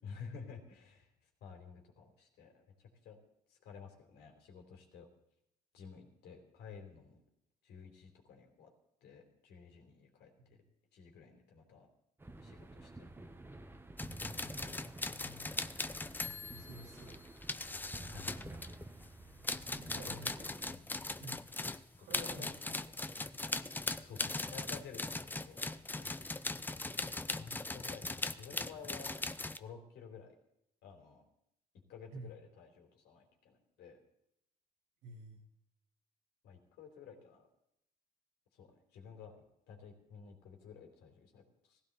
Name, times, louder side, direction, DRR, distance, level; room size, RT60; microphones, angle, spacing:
voice 1, 0.0-1.1 1.4-2.5 2.8-3.2 3.5-5.1 5.7-7.2 7.6-8.7 9.0-10.3 10.9-11.9 12.4-13.1 18.1-18.6 20.1-20.2 20.7-20.8 21.9-22.5 23.5-23.7 24.0-25.7 26.0-26.3 27.4-29.1 29.6-30.4 30.8-31.2 31.9-34.0 36.4-37.5 38.6-39.3 39.7-41.8, left 6 dB, 80° left, 3 dB, 3.7 m, -52 dB
sound 1, 12.2-20.7, right 2 dB, 15° right, 1.1 m, -51 dB
sound 2, 14.0-19.1 19.4-29.6, left 2 dB, 10° left, 0.6 m, -40 dB
voice 2, 15.0-15.5 16.2-17.2 19.7-20.5 21.2-21.4 22.0-22.7 32.1-32.3 35.0-35.4, right 2 dB, 80° right, 1 dB, 3.6 m, -51 dB
17.5 x 15.5 x 4.1 m, 0.80 s
cardioid pair, 110°, 17 cm